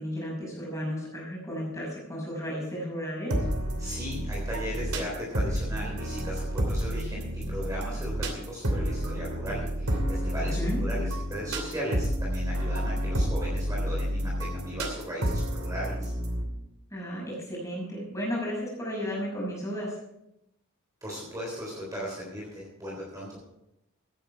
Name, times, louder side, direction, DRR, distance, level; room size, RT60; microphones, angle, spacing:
voice 1, 0.0-3.4 10.4-10.8 16.9-20.0, equal, 15° left, -3 dB, 5.9 m, -33 dB
sound 1, 3.3-16.4, equal, 75° right, 2.8 m, -30 dB
voice 2, 3.8-16.1 21.0-23.4, equal, 15° right, -4 dB, 3.6 m, -37 dB
15.5 x 10.0 x 4.6 m, 0.83 s
head